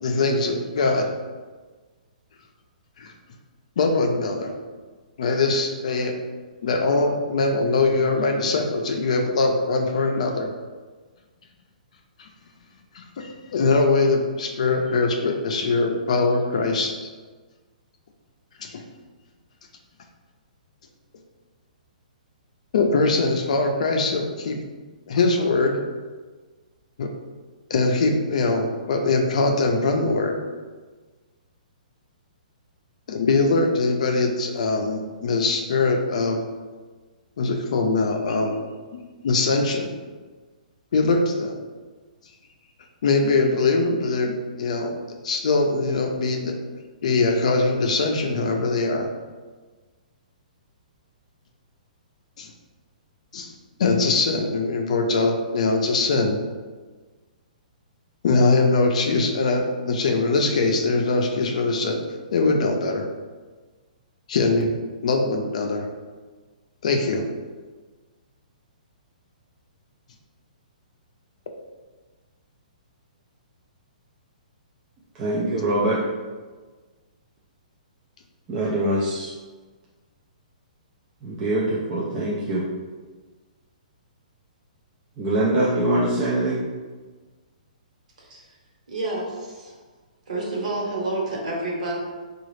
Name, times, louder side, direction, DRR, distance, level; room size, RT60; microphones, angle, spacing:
voice 1, 0.0-1.1 3.0-3.1 3.8-4.5 5.2-6.1 6.6-10.5 12.2-12.3 12.9-17.1 18.6-18.8 22.7-24.6 25.1-25.8 27.0-27.1 27.7-30.3 33.1-36.4 37.4-38.6 39.2-39.9 40.9-41.6 43.0-45.0 45.2-46.6 47.0-49.1 52.4-52.5 53.3-53.5 53.8-56.4 58.2-62.0 62.3-63.1 64.3-64.7 65.0-65.9 66.8-67.2, left 3 dB, 50° left, 3 dB, 0.5 m, -22 dB
voice 2, 75.2-76.0 78.5-79.3 81.2-82.6 85.2-86.6, right 1 dB, 15° right, -6 dB, 0.4 m, -23 dB
voice 3, 88.9-89.8 90.3-91.9, right 2 dB, 55° right, -3 dB, 1.2 m, -29 dB
3.8 x 2.4 x 3.1 m, 1.4 s
hypercardioid pair, 170°, 4 cm